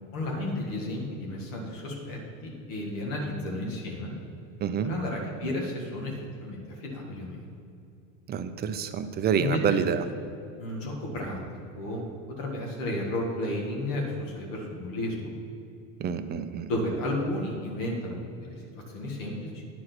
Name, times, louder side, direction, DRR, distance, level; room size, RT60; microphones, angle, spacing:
voice 1, 0.1-4.1 4.8-7.4 9.4-9.8 10.6-11.4 11.7-12.1 12.4-15.3 16.7-19.6, left 1 dB, 70° left, -1 dB, 1.9 m, -33 dB
voice 2, 4.6-5.0 8.3-10.0 16.0-16.7, right 7 dB, 25° right, 10 dB, 0.5 m, -27 dB
10.0 x 4.8 x 6.0 m, 2.7 s
supercardioid pair, 110°, 39 cm